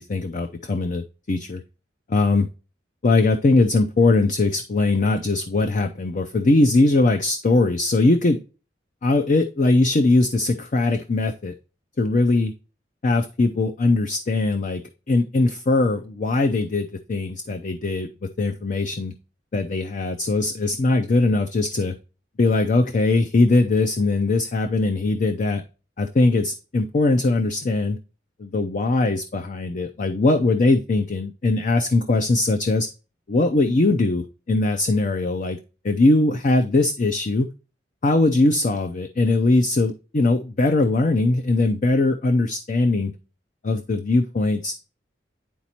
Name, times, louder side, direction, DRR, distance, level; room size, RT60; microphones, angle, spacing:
voice 1, 0.0-1.6 2.1-2.5 3.0-8.4 9.0-11.5 12.0-12.5 13.0-14.8 15.1-19.1 19.5-21.9 22.4-25.6 26.0-28.0 28.4-32.9 33.3-35.6 35.8-37.5 38.0-43.1 43.6-44.8, left 2 dB, 45° left, 6 dB, 0.5 m, -20 dB
10.0 x 4.1 x 2.9 m, 0.33 s
head